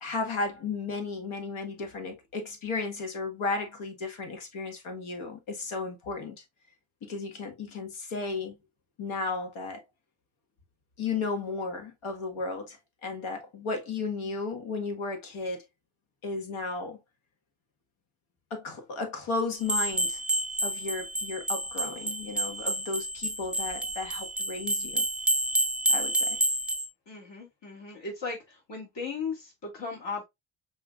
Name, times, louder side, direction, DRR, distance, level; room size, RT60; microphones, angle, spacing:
voice 1, 0.0-6.4 7.0-8.6 9.0-9.8 11.0-15.6 16.2-17.0 18.5-20.2 20.6-25.1 25.9-26.4, left 3 dB, 85° left, 1.6 m, -34 dB
sound 1, 19.6-26.9, right 1 dB, ahead, 0.4 m, -29 dB
voice 2, 27.1-30.2, left 4 dB, 60° left, 2.1 m, -37 dB
5.5 x 3.1 x 2.4 m
cardioid pair, 80°, 48 cm